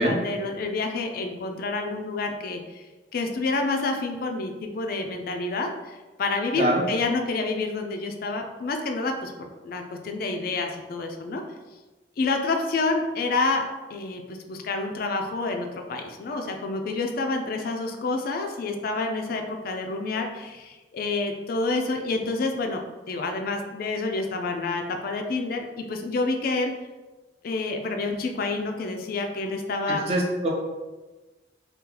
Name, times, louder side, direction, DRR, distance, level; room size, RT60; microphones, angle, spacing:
voice 1, 0.0-2.8 3.1-9.3 9.6-11.4 12.2-13.6 13.9-22.8 23.1-26.7 27.4-30.0, left 3 dB, 55° left, 4 dB, 0.4 m, -28 dB
voice 2, 29.9-30.5, right 1 dB, 35° right, -1 dB, 0.6 m, -24 dB
2.8 x 2.3 x 3.7 m, 1.2 s
head